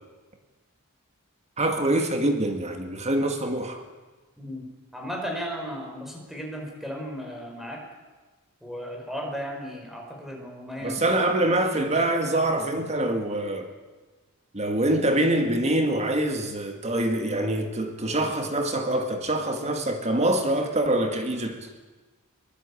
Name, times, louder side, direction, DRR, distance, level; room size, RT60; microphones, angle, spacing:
voice 1, 1.6-3.8 10.8-13.7 14.5-21.7, right 1 dB, 30° right, 2.0 m, -25 dB
voice 2, 4.4-4.7 4.9-7.8 8.6-11.0, equal, ahead, 5.0 m, -35 dB
23.5 x 19.5 x 8.5 m
head